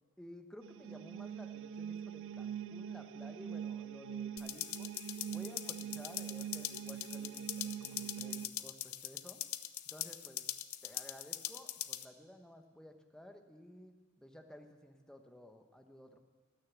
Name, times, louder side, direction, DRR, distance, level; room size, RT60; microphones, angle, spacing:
voice 1, 0.2-4.9 5.3-9.4 9.9-10.5 10.8-16.2, equal, 5° left, 5 dB, 1.0 m, -54 dB
sound 1, 0.6-8.5, right 8 dB, 60° right, 0.3 m, -43 dB
sound 2, 4.4-12.0, left 14 dB, 70° left, 0.6 m, -42 dB
18.5 x 6.7 x 8.5 m, 1.4 s
head